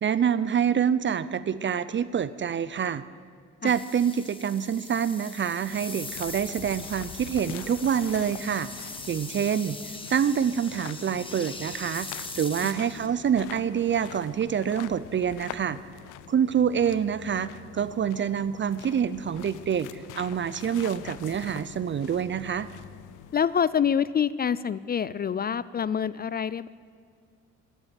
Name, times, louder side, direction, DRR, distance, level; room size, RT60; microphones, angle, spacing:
voice 1, 0.0-3.0 3.6-8.7 9.1-12.1 12.4-15.8 16.3-22.7, right 8 dB, 40° right, 16 dB, 0.5 m, -26 dB
sound 1, 3.7-13.1, left 2 dB, 15° left, 1.7 m, -41 dB
sound 2, 5.4-23.7, left 12 dB, 90° left, 0.6 m, -45 dB
voice 2, 23.3-26.7, left 7 dB, 30° left, 18 dB, 0.4 m, -26 dB
12.5 x 11.0 x 9.0 m, 2.2 s
cardioid pair, 90°, 30 cm